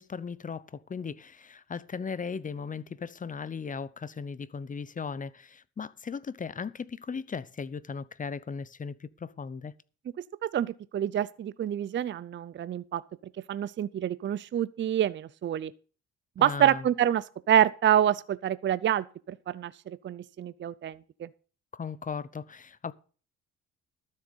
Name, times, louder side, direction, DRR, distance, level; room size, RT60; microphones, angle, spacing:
voice 1, 0.0-9.7 16.4-16.8 21.7-22.9, left 5 dB, 30° left, 0.8 m, -37 dB
voice 2, 10.4-13.0 13.5-15.7 16.4-21.3, right 10 dB, 40° right, 0.5 m, -27 dB
12.5 x 7.6 x 5.4 m
cardioid pair, 105°, 29 cm